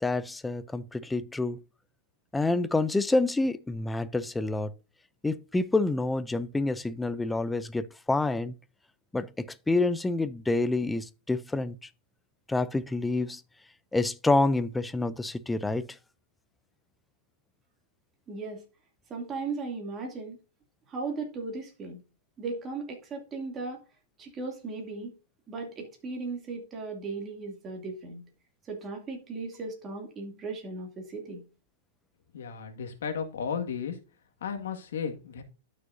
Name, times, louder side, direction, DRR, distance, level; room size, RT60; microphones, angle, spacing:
voice 1, 0.0-1.6 2.3-4.7 5.2-8.5 9.1-11.8 12.5-13.4 13.9-15.9, left 2 dB, 5° left, 0.4 m, -28 dB
voice 2, 18.3-18.6 19.1-20.4 20.9-22.0 22.4-23.8 24.2-25.1 25.5-28.2 28.7-31.4, right 3 dB, 20° right, 2.6 m, -37 dB
voice 3, 32.3-34.0 34.4-35.4, left 6 dB, 80° left, 1.8 m, -34 dB
12.0 x 6.4 x 2.7 m
supercardioid pair, 155°, 0 cm